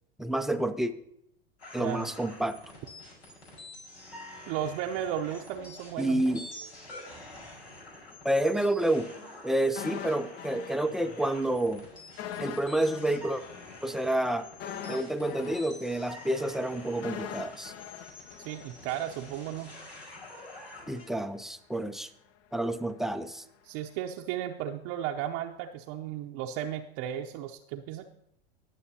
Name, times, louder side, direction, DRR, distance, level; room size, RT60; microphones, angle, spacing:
voice 1, 0.2-0.9 1.7-2.6 6.0-6.4 8.2-9.1 9.4-11.8 12.4-13.4 13.8-14.4 14.9-17.7 20.9-22.1 22.5-23.4, right 1 dB, ahead, 9 dB, 0.4 m, -29 dB
sound 1, 1.6-21.1, left 2 dB, 85° left, 5.1 m, -48 dB
voice 2, 1.8-2.1 4.5-6.4 18.4-19.7 23.6-28.0, right 10 dB, 50° right, 2 dB, 0.7 m, -35 dB
sound 2, 9.8-11.4 11.7-11.8 12.2-19.3 19.6-19.7, left 9 dB, 65° left, 0.9 m, -42 dB
19.0 x 7.1 x 2.8 m, 0.74 s
hypercardioid pair, 95°, 32 cm